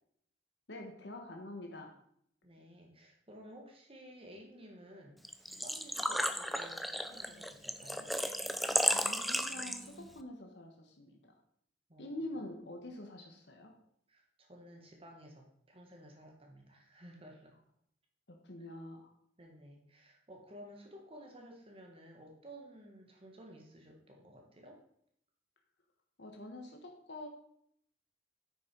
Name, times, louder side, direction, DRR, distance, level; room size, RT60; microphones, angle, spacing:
voice 1, 0.7-1.9 8.9-11.4 12.0-13.7 18.3-19.1 26.2-27.3, left 1 dB, 70° left, 2 dB, 1.3 m, -46 dB
voice 2, 2.4-8.1 11.9-12.3 14.1-17.5 18.6-18.7 19.4-24.8, equal, 30° right, 1 dB, 1.5 m, -54 dB
Engine / Trickle dribble / Fill (with liquid), 5.2-10.1, equal, ahead, 0.4 m, -34 dB
9.2 x 6.4 x 4.6 m, 0.69 s
head